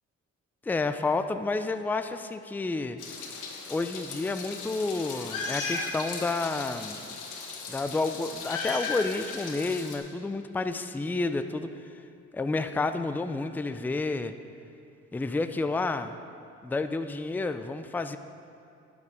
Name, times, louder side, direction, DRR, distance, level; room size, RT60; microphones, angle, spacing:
voice 1, 0.6-3.0 3.7-7.2 7.7-11.9 12.3-14.3 15.1-16.2 16.6-18.2, left 3 dB, 5° left, 10 dB, 0.4 m, -30 dB
Meow, 3.0-10.0, left 4 dB, 85° left, 1.4 m, -36 dB
11.5 x 7.2 x 4.8 m, 2.5 s
cardioid pair, 90°, 30 cm